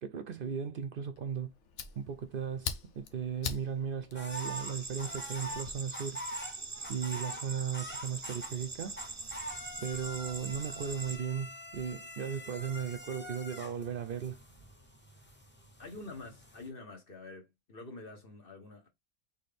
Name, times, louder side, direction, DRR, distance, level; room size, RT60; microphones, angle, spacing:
voice 1, 0.0-1.5 2.0-6.2 6.9-9.0 9.8-14.4, right 7 dB, 60° right, 0.6 m, -36 dB
Fire, 1.1-5.7, left 7 dB, 85° left, 1.1 m, -44 dB
sound 1, 4.1-8.7 9.0-16.7, equal, 10° left, 0.6 m, -45 dB
sound 2, 4.3-11.2, right 3 dB, 30° right, 0.3 m, -43 dB
voice 2, 15.8-18.9, left 3 dB, 50° left, 1.5 m, -47 dB
4.2 x 3.7 x 3.4 m
omnidirectional pair, 1.2 m